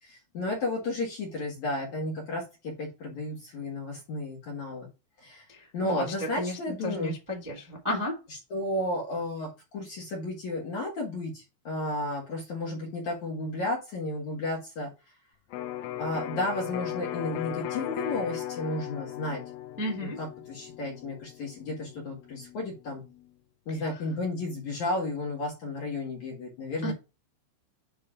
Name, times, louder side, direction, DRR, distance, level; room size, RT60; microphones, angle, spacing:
voice 1, 0.0-4.9 5.2-5.5 5.7-7.1 8.5-14.9 16.0-19.4 20.0-23.0 23.7-26.9, left 2 dB, 55° left, -1 dB, 2.2 m, -33 dB
voice 2, 5.5-8.2 19.8-20.2 26.8-26.9, left 1 dB, 10° right, -2 dB, 1.0 m, -32 dB
Electric guitar, 15.5-23.3, left 13 dB, 85° left, 3.2 m, -38 dB
9.3 x 3.2 x 4.9 m, 0.28 s
omnidirectional pair, 5.6 m